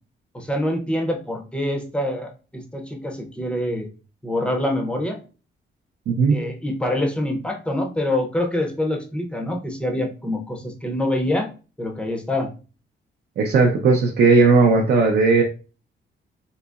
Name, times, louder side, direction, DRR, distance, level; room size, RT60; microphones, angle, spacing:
voice 1, 0.3-3.9 4.2-5.2 6.3-11.5 11.8-12.5, left 1 dB, 5° left, 2 dB, 0.5 m, -25 dB
voice 2, 6.1-6.4 13.4-15.4, right 4 dB, 55° right, 2 dB, 0.5 m, -16 dB
3.8 x 2.8 x 2.3 m, 0.35 s
wide cardioid pair, 170°, 20 cm